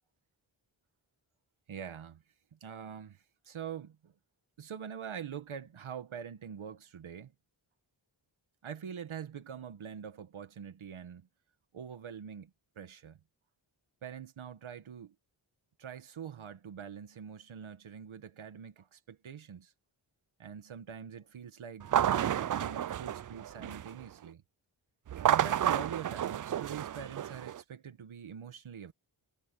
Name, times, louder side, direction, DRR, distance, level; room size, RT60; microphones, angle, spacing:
voice 1, 1.7-2.2 2.5-4.1 4.6-7.3 8.6-11.3 11.7-12.5 12.7-13.2 14.0-15.1 15.8-19.7 20.4-24.4 25.3-28.9, right 8 dB, 85° right, 1.6 m, -44 dB
sound 1, 21.8-24.0 25.1-27.6, right 10 dB, 45° right, 0.4 m, -31 dB
cardioid pair, 50°, 47 cm